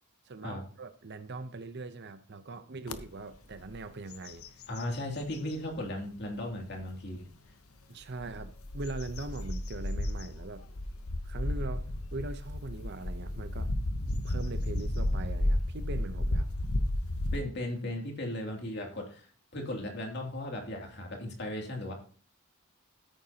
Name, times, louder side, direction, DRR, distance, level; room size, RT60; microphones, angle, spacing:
voice 1, 0.3-4.6 7.9-10.6 11.2-11.8 12.1-13.7 14.2-16.5, right 2 dB, 50° right, 0.7 m, -41 dB
sound 1, 2.9-3.0 3.5-3.8 4.1-5.6 6.2-6.3 8.0-17.4, left 1 dB, 80° left, 0.9 m, -33 dB
voice 2, 4.7-7.3 17.3-21.9, left 1 dB, 50° left, 2.6 m, -36 dB
14.0 x 9.1 x 2.9 m
head